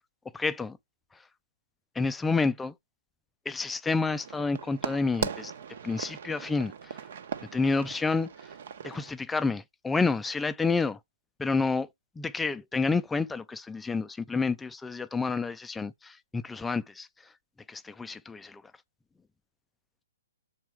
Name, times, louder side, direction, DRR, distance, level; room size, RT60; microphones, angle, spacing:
voice 1, 0.3-0.8 1.9-2.7 3.5-5.5 5.8-7.0 7.5-8.5 8.8-11.0 11.4-11.9 12.2-17.1 17.7-18.6, left 4 dB, 5° left, 0.4 m, -29 dB
sound 1, 4.0-9.1, right 7 dB, 60° right, 1.1 m, -38 dB
7.3 x 4.5 x 4.6 m
hypercardioid pair, 130°, 0 cm